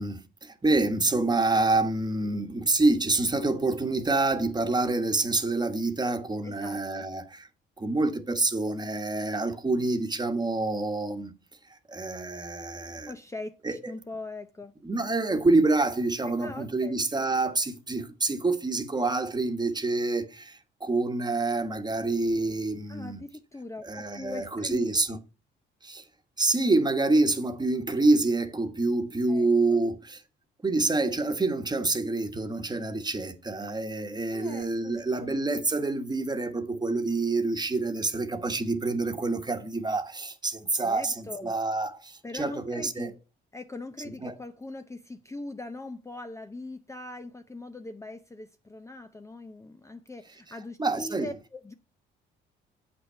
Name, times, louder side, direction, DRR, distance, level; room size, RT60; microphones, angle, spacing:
voice 1, 0.0-7.5 7.8-11.3 11.7-13.1 13.6-13.9 14.8-23.2 23.8-25.2 25.8-26.0 26.4-30.2 30.6-43.1 44.2-44.4 50.8-51.3, right 2 dB, 20° right, 1.4 m, -27 dB
voice 2, 6.4-7.0 13.1-14.7 16.3-17.0 22.9-25.2 29.3-29.8 34.3-35.4 40.8-41.5 42.2-43.2 43.5-51.7, left 2 dB, 15° left, 0.6 m, -41 dB
8.1 x 6.0 x 5.5 m
cardioid pair, 90°, 20 cm